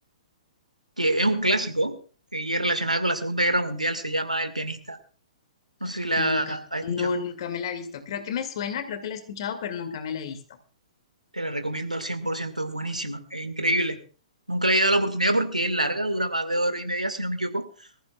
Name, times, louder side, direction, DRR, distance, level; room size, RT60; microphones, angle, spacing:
voice 1, 1.0-1.9 2.3-5.0 5.8-7.1 11.3-14.0 14.5-17.6, right 1 dB, 85° right, 9 dB, 1.8 m, -26 dB
voice 2, 5.9-6.6 6.8-10.4, left 6 dB, 45° left, 8 dB, 2.2 m, -31 dB
24.0 x 14.5 x 2.3 m, 0.38 s
figure-of-eight pair, 120°, 4 cm